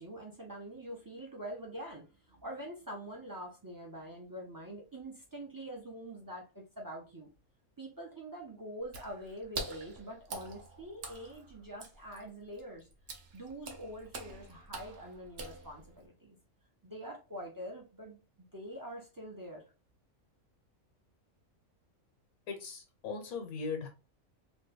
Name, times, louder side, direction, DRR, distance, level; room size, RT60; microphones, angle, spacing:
voice 1, 0.0-7.3 7.8-12.9 13.3-16.4 16.8-18.2 18.5-19.7, right 1 dB, 30° right, 0.4 m, -45 dB
Water / Splash splatter, 8.8-16.1, right 3 dB, 55° right, 0.8 m, -45 dB
voice 2, 22.5-23.9, left 5 dB, 85° left, 1.3 m, -39 dB
3.0 x 2.2 x 3.3 m
omnidirectional pair, 1.5 m